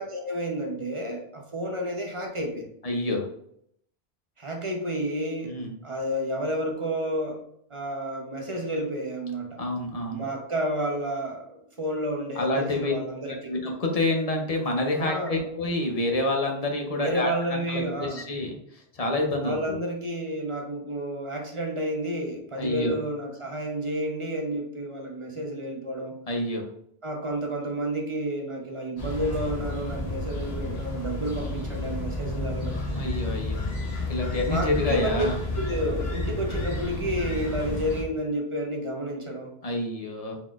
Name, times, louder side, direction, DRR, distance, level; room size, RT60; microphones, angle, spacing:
voice 1, 0.0-2.7 4.4-5.5 5.8-7.4 7.7-9.6 10.1-13.5 15.0-15.4 16.9-18.2 19.4-26.2 27.0-32.8 34.5-35.3 35.6-39.5, right 1 dB, 35° right, 1 dB, 0.8 m, -30 dB
voice 2, 2.8-3.2 5.4-5.8 9.6-10.2 12.3-12.9 13.5-19.8 22.6-23.0 26.3-26.7 32.9-33.6 34.1-35.4 39.6-40.4, left 2 dB, 40° left, 1 dB, 0.8 m, -28 dB
sound 1, 29.0-38.0, left 2 dB, 80° left, 1.3 m, -31 dB
4.1 x 4.0 x 2.4 m, 0.71 s
omnidirectional pair, 1.1 m